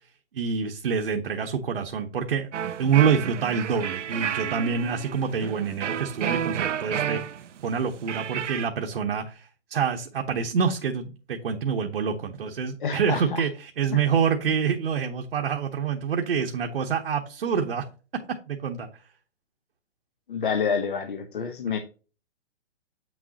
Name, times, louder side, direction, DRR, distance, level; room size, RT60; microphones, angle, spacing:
voice 1, 0.3-2.5 2.8-7.2 7.6-17.9 18.3-18.9, right 6 dB, 55° right, 3 dB, 1.0 m, -26 dB
sound 1, 2.5-8.7, right 9 dB, 75° right, 0.7 m, -31 dB
voice 2, 12.8-13.5 13.9-14.0 20.3-21.8, left 6 dB, 45° left, 6 dB, 0.9 m, -28 dB
8.5 x 6.4 x 2.8 m, 0.35 s
hypercardioid pair, 170°, 36 cm